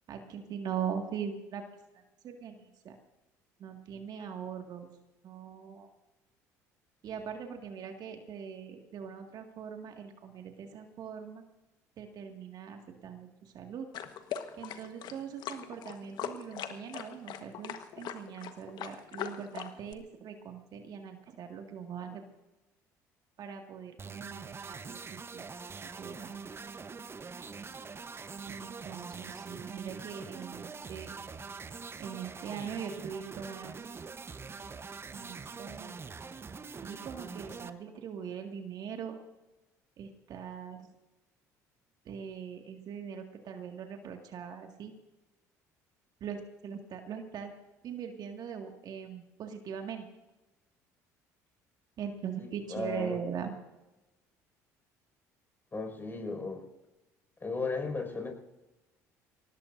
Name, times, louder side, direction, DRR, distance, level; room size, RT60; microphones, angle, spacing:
voice 1, 0.1-1.6 2.2-3.0 3.6-4.9 5.2-5.9 7.0-11.4 12.0-13.9 14.6-22.2 23.4-25.5 26.0-26.5 28.5-31.1 32.0-33.8 35.1-35.9 36.8-39.2 40.0-40.9 42.1-44.9 46.2-47.5 47.8-50.1 52.0-53.5, right 7 dB, 55° right, 4 dB, 2.0 m, -41 dB
sound 1, 13.9-19.9, left 9 dB, 60° left, 1.3 m, -40 dB
sound 2, 24.0-37.7, right 5 dB, 30° right, 1.0 m, -44 dB
voice 2, 52.4-53.2 55.7-56.6 57.4-58.3, left 3 dB, 25° left, 4 dB, 5.6 m, -35 dB
23.5 x 18.5 x 2.7 m, 1.0 s
hypercardioid pair, 65°, 8 cm